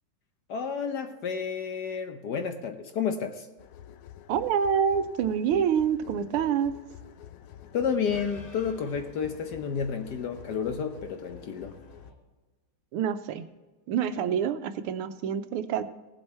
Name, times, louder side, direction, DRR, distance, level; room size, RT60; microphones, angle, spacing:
voice 1, 0.5-3.5 7.7-11.8, left 6 dB, 60° left, 7 dB, 1.2 m, -31 dB
sound 1, 3.6-12.1, left 11 dB, 85° left, 1.6 m, -48 dB
voice 2, 4.3-6.7 12.9-13.4 13.9-15.8, right 8 dB, 85° right, 11 dB, 1.6 m, -26 dB
sound 2, 7.1-12.1, left 2 dB, 30° left, 2.2 m, -53 dB
17.5 x 7.8 x 4.3 m, 1.2 s
omnidirectional pair, 2.3 m